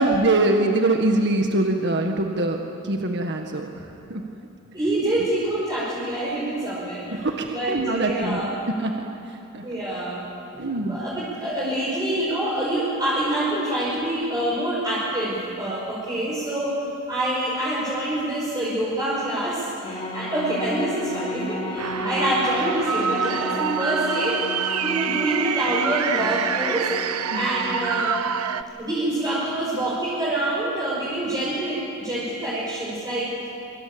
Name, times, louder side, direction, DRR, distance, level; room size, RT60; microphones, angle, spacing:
voice 1, 0.0-2.6 2.8-3.7 4.1-4.2 7.2-8.5 8.8-8.9 9.5-9.6 10.6-11.0 27.3-27.5, right 2 dB, 50° right, 3 dB, 1.7 m, -23 dB
voice 2, 4.7-7.3 7.5-8.5 9.6-10.2 10.9-16.8 17.1-24.4 24.8-26.9 27.3-28.1 28.8-33.3, right 1 dB, 20° right, -7 dB, 5.5 m, -26 dB
sound 1, 19.8-28.1, left 1 dB, 25° left, 3.2 m, -33 dB
sound 2, 21.8-28.6, right 7 dB, 80° right, 0.9 m, -27 dB
26.5 x 24.5 x 8.7 m, 2.8 s
head